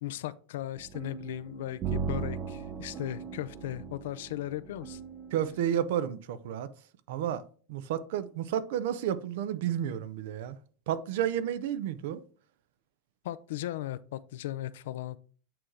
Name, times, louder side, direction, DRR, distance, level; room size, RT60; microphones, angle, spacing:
voice 1, 0.0-5.0 13.2-15.2, left 14 dB, 80° left, 0.4 m, -37 dB
sound 1, 0.8-5.7, right 6 dB, 35° right, 0.7 m, -38 dB
voice 2, 5.3-6.7 7.1-7.4 7.7-10.6 10.9-12.2, right 10 dB, 75° right, 0.6 m, -31 dB
8.7 x 3.3 x 3.7 m
supercardioid pair, 125°, 0 cm